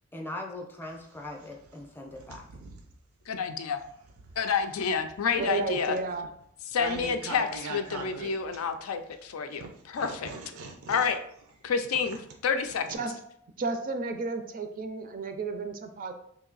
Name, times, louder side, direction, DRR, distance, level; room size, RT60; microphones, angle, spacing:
voice 1, 0.1-2.4, left 2 dB, 10° left, 1 dB, 0.5 m, -40 dB
sound 1, 0.8-3.0 3.6-9.1 9.6-13.0, right 3 dB, 85° right, 0.6 m, -43 dB
voice 2, 3.3-3.8 4.4-6.0 6.7-10.3 10.9-11.2 11.6-12.2 12.4-13.0, left 6 dB, 80° left, 7 dB, 0.4 m, -29 dB
voice 3, 5.4-6.3 12.9-13.1 13.6-16.1, right 3 dB, 40° right, 6 dB, 0.4 m, -32 dB
3.1 x 2.7 x 3.9 m, 0.69 s
head